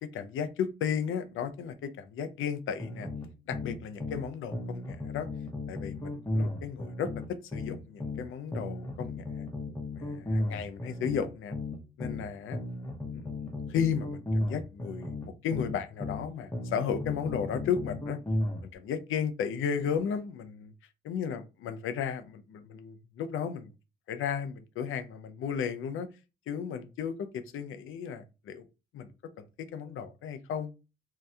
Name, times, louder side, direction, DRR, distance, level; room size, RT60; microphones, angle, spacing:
voice 1, 0.0-3.1 3.5-5.3 5.7-9.5 9.9-11.6 12.0-12.6 13.1-18.2 18.7-20.7 21.0-23.7 24.1-26.1 26.5-28.7 28.9-29.1 29.4-30.7, left 7 dB, 80° left, 0.5 m, -34 dB
sound 1, 2.8-4.2 4.5-8.2 8.5-12.2 12.5-16.2 16.5-18.6, left 1 dB, 15° left, 0.8 m, -34 dB
2.7 x 2.3 x 3.3 m
cardioid pair, 65°, 21 cm